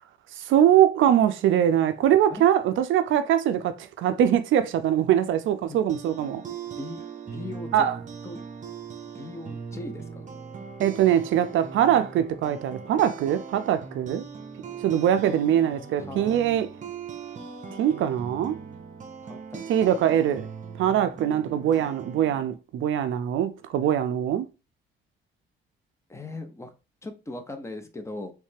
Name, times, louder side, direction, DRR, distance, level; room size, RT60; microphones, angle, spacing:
voice 1, 0.4-6.4 7.7-7.9 10.8-14.2 14.8-16.7 17.8-18.6 19.7-20.5 20.8-24.5, right 10 dB, 70° right, 0.4 m, -22 dB
sound 1, 5.6-22.5, right 6 dB, 40° right, 0.8 m, -40 dB
voice 2, 6.7-7.9 8.2-8.4 9.1-10.3 16.0-16.4 19.2-19.6 26.1-26.7 27.0-28.3, left 2 dB, 15° left, 0.7 m, -39 dB
3.2 x 3.2 x 3.2 m
cardioid pair, 115°, 21 cm